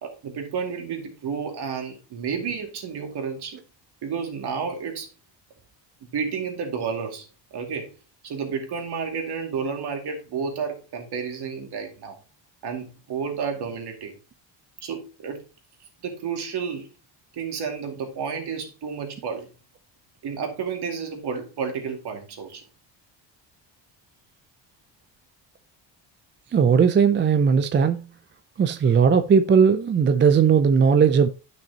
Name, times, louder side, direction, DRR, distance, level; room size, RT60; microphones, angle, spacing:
voice 1, 0.0-3.6 4.0-5.1 6.1-7.9 8.2-12.2 12.6-14.1 14.8-15.4 16.0-16.9 17.3-19.5 20.2-22.6, right 6 dB, 60° right, 2.4 m, -31 dB
voice 2, 26.5-28.0 28.6-31.3, right 6 dB, 25° right, 0.4 m, -18 dB
10.5 x 6.2 x 2.9 m
cardioid pair, 135°, 44 cm